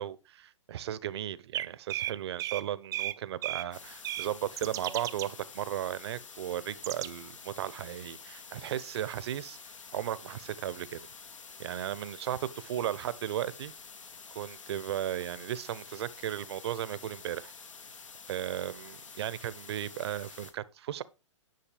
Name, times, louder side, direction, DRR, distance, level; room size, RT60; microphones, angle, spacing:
voice 1, 0.0-11.0 11.6-13.7 14.3-17.5 18.3-21.0, right 11 dB, 55° right, 0.9 m, -36 dB
song thrush, 1.5-2.6 2.9-3.2 3.4-3.6 4.0-4.3 4.6-5.3 6.8-7.1, right 13 dB, 20° right, 0.6 m, -34 dB
sound 1, 3.7-20.5, left 5 dB, 80° left, 2.3 m, -49 dB
10.5 x 6.5 x 4.8 m
hypercardioid pair, 130°, 16 cm